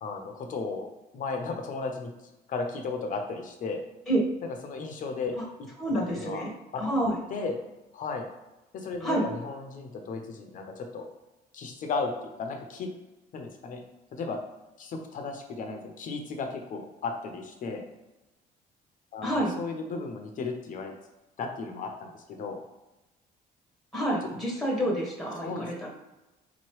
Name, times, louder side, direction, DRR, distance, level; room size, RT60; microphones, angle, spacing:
voice 1, 0.0-2.1 2.5-3.8 4.4-5.7 5.9-6.4 6.7-6.8 7.3-7.6 7.9-8.3 8.7-11.1 11.5-12.9 13.3-13.8 14.1-14.4 14.8-17.9 19.1-20.9 21.4-22.6 24.3-24.4 25.4-25.7, left 4 dB, 50° left, 4 dB, 0.7 m, -35 dB
voice 2, 5.8-6.5 6.8-7.2 9.0-9.3 19.2-19.5 23.9-25.9, right 1 dB, ahead, -4 dB, 1.2 m, -28 dB
4.0 x 3.0 x 3.1 m, 1.0 s
cardioid pair, 110°, 17 cm